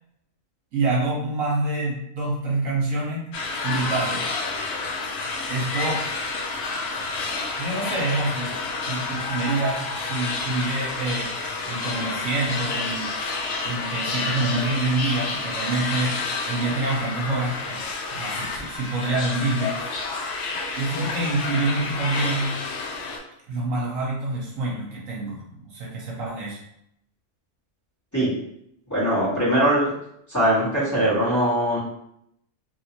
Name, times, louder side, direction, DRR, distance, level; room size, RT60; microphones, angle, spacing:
voice 1, 0.7-3.3 3.6-4.3 5.5-6.0 7.6-8.6 8.9-11.3 11.7-13.1 13.6-16.1 16.4-17.8 18.1-19.7 20.8-22.6 23.5-26.6, right 2 dB, 75° right, -4 dB, 1.3 m, -26 dB
sound 1, 3.3-23.2, left 3 dB, 65° left, 0.7 m, -29 dB
voice 2, 28.9-29.9 30.3-31.8, right 1 dB, 15° left, -12 dB, 1.5 m, -21 dB
3.1 x 2.7 x 2.9 m, 0.76 s
omnidirectional pair, 1.4 m